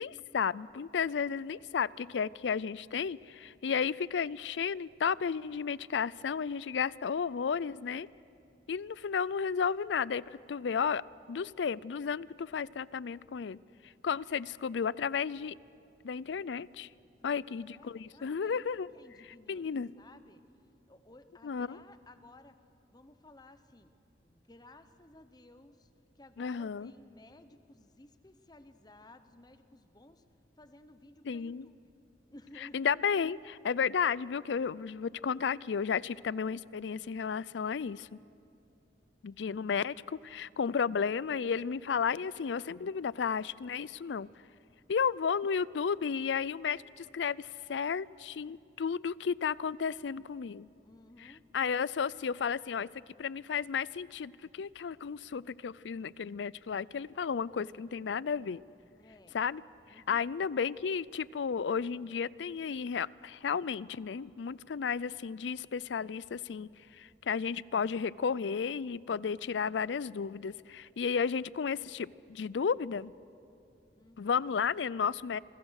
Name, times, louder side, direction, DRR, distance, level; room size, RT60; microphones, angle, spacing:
voice 1, 0.0-8.1 8.7-10.2 10.5-11.0 11.3-13.6 14.0-15.6 16.0-16.9 17.2-18.9 19.5-19.9 21.4-21.8 26.4-26.9 31.3-31.7 32.7-38.1 39.2-44.3 44.9-50.7 51.2-52.9 53.2-58.6 59.3-59.6 60.1-73.1 74.2-75.4, left 6 dB, 90° left, 21 dB, 0.4 m, -33 dB
voice 2, 17.2-19.7 20.0-20.4 20.9-22.6 22.9-23.9 24.2-25.9 26.1-30.2 30.6-31.7 32.3-32.9 50.8-51.4 59.0-59.5 59.9-60.2 73.9-74.4, left 2 dB, 25° left, 10 dB, 1.0 m, -57 dB
27.5 x 21.5 x 6.5 m, 2.7 s
head